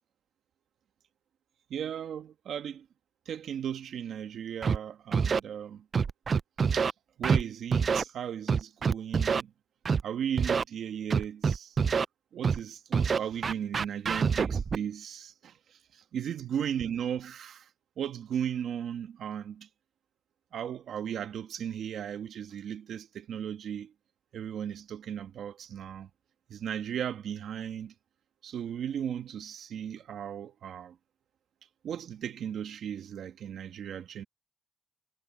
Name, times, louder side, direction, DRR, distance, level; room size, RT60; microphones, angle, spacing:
voice 1, 1.7-2.8 3.3-5.8 6.7-6.9 7.2-9.5 10.0-11.8 12.3-15.5 15.9-17.7 18.0-19.7 20.5-23.9 24.3-26.1 26.5-27.9 28.4-31.0 31.8-34.2, right 9 dB, 80° right, 1.4 m, -36 dB
Scratching (performance technique), 4.6-4.8 5.1-5.4 5.9-6.9 7.2-7.4 7.7-8.0 8.5-9.4 9.9-10.0 10.4-10.6 11.1-12.0 12.4-12.6 12.9-14.8, right 5 dB, 50° right, 0.3 m, -26 dB
cardioid pair, 100°, 0 cm